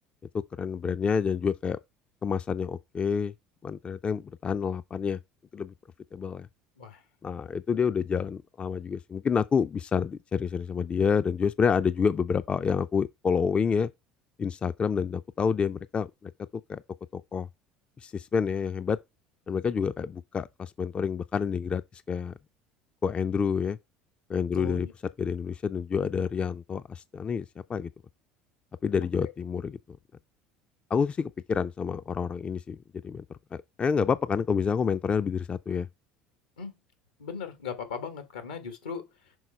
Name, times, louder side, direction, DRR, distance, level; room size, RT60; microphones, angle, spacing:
voice 1, 0.6-1.8 2.2-3.3 3.6-5.2 5.5-5.7 6.1-6.5 7.2-13.9 14.4-16.3 16.7-16.8 17.1-17.5 18.0-19.0 19.5-21.8 22.1-22.3 23.0-23.8 24.3-24.9 25.2-27.9 28.8-29.8 30.9-32.8 33.0-33.2 33.8-35.9, left 6 dB, 30° left, 0.3 m, -28 dB
voice 2, 24.5-24.9 29.2-29.3 36.6-36.7 37.2-39.4, left 5 dB, 85° left, 1.4 m, -38 dB
6.1 x 3.9 x 4.4 m
hypercardioid pair, 70°, 4 cm